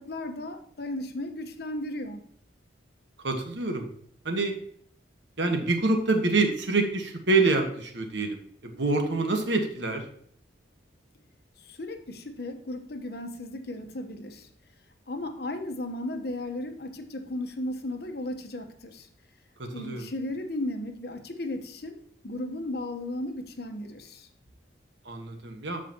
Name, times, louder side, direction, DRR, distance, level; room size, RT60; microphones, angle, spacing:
voice 1, 0.0-2.3 11.6-14.5 15.1-19.1 19.7-22.0 22.2-24.3, left 1 dB, 55° left, 6 dB, 1.0 m, -35 dB
voice 2, 3.2-3.9 4.2-4.6 5.4-10.0 19.6-20.1 25.0-25.8, right 3 dB, 70° right, 4 dB, 1.4 m, -26 dB
13.5 x 4.9 x 2.9 m, 0.64 s
head